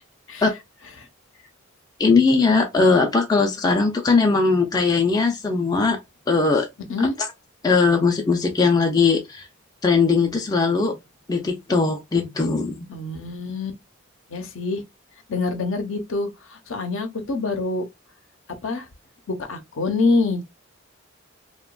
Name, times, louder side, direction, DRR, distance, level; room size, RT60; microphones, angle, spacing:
voice 1, 2.0-6.0 6.3-6.7 7.6-9.5 9.8-10.9 11.3-12.8, left 4 dB, 20° left, 0.3 m, -19 dB
voice 2, 12.9-13.8 14.3-14.8 15.3-17.8 18.6-18.9 19.3-20.4, left 3 dB, 70° left, 0.6 m, -25 dB
2.8 x 2.2 x 2.2 m
head